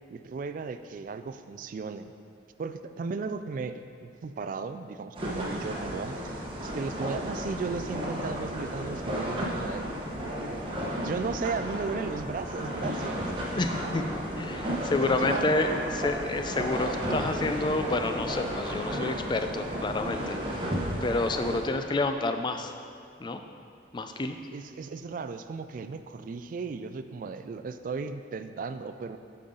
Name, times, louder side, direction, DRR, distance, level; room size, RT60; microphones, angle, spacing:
voice 1, 0.1-2.1 2.6-9.9 10.8-13.3 15.0-15.7 24.5-29.2, right 4 dB, 50° right, 10 dB, 0.3 m, -36 dB
sound 1, 5.1-21.6, equal, 30° right, 1.0 m, -33 dB
voice 2, 13.5-14.1 14.4-20.4 21.0-22.7 23.2-23.4 23.9-24.4, left 2 dB, 25° left, 7 dB, 0.3 m, -29 dB
8.5 x 5.5 x 3.8 m, 2.2 s
head